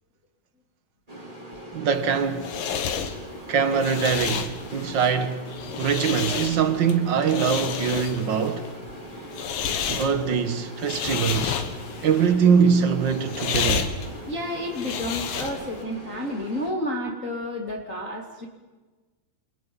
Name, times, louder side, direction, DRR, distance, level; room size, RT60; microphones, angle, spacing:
sound 1, 1.1-16.7, right 1 dB, 10° right, 3.8 m, -41 dB
voice 1, 1.7-2.8 3.5-8.7 9.9-11.6 12.0-13.9, right 6 dB, 80° right, 1.0 m, -23 dB
sound 2, 2.0-15.8, left 7 dB, 70° left, 3.4 m, -31 dB
voice 2, 3.0-3.4 14.2-18.5, left 1 dB, 25° left, 2.6 m, -31 dB
30.0 x 28.5 x 5.4 m
omnidirectional pair, 4.4 m